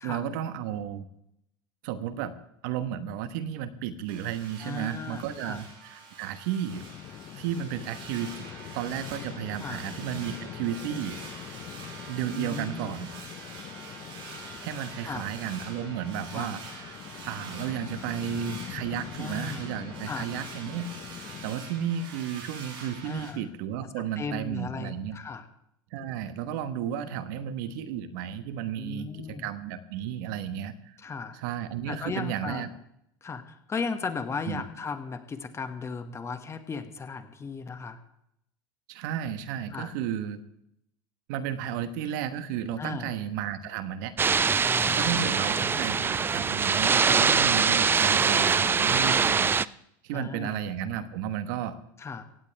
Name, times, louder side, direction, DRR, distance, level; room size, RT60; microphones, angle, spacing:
voice 1, 0.0-1.1 1.8-2.3 2.6-6.8 7.4-11.2 12.1-13.1 14.6-17.0 17.2-20.9 21.4-25.2 25.9-31.0 31.3-32.7 34.5-34.6 38.9-40.4 41.3-44.1 44.9-49.5 50.0-51.8, right 9 dB, 70° right, 12 dB, 1.3 m, -33 dB
sound 1, 4.1-23.3, right 4 dB, 55° right, 7.2 m, -45 dB
voice 2, 4.6-5.6 9.6-9.8 12.3-12.9 15.1-15.3 16.3-16.5 19.2-19.6 20.1-20.3 23.0-23.4 24.2-25.4 28.8-29.5 31.0-31.4 31.9-32.7 33.2-38.0 39.7-39.9 42.8-43.1 44.6-45.5 49.0-49.2 50.1-50.5 52.0-52.2, left 5 dB, 25° left, 8 dB, 1.8 m, -36 dB
sound 2, 6.7-21.5, left 12 dB, 50° left, 0.8 m, -43 dB
sound 3, 44.2-49.6, right 5 dB, 20° right, 0.4 m, -23 dB
17.5 x 16.5 x 3.4 m, 0.77 s
hypercardioid pair, 90°, 11 cm